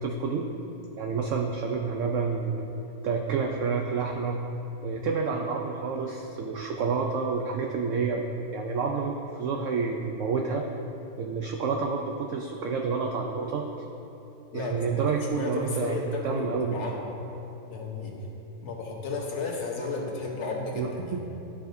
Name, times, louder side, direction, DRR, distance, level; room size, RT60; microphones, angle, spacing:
voice 1, 0.0-0.4 1.0-2.7 3.0-4.4 4.8-8.2 8.5-10.6 11.2-13.6 14.5-16.8 20.8-20.9, right 5 dB, 70° right, 1 dB, 0.7 m, -29 dB
voice 2, 15.1-17.1 17.7-18.2 18.6-21.2, left 3 dB, 50° left, -2 dB, 1.2 m, -33 dB
12.5 x 5.0 x 2.6 m, 2.9 s
omnidirectional pair, 1.7 m